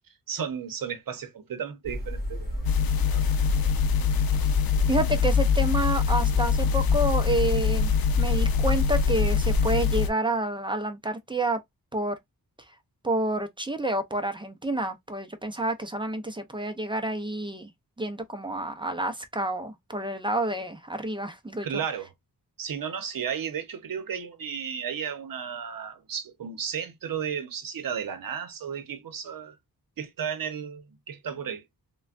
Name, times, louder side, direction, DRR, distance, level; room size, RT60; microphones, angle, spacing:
voice 1, 0.3-3.2 21.6-22.1 22.6-29.6 30.0-31.6, right 7 dB, 65° right, 0.8 m, -34 dB
sound 1, 1.8-9.7, right 1 dB, 25° left, 1.3 m, -31 dB
sound 2, 2.6-10.1, left 7 dB, 70° left, 0.6 m, -24 dB
voice 2, 4.9-7.9 8.2-11.6 11.9-12.2 13.0-17.7 18.0-21.8, right 1 dB, 15° right, 0.5 m, -29 dB
3.3 x 2.2 x 2.4 m
wide cardioid pair, 120°, 37 cm